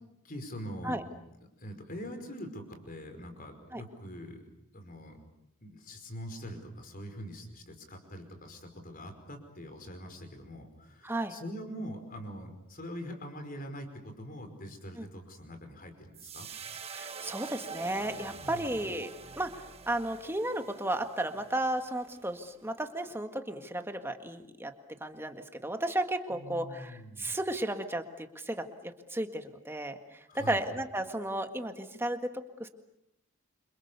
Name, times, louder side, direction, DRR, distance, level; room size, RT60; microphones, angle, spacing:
voice 1, 0.2-1.1 1.4-4.5 4.7-5.2 5.6-16.5 18.4-18.8 26.3-27.3 30.3-30.7, equal, 40° left, 6 dB, 5.1 m, -43 dB
voice 2, 11.0-11.4 15.0-15.1 16.9-19.1 19.4-24.7 25.0-32.7, right 1 dB, 10° right, 7 dB, 1.8 m, -34 dB
sound 1, 16.1-22.5, right 5 dB, 25° right, 1.4 m, -46 dB
29.0 x 27.0 x 7.0 m, 0.81 s
head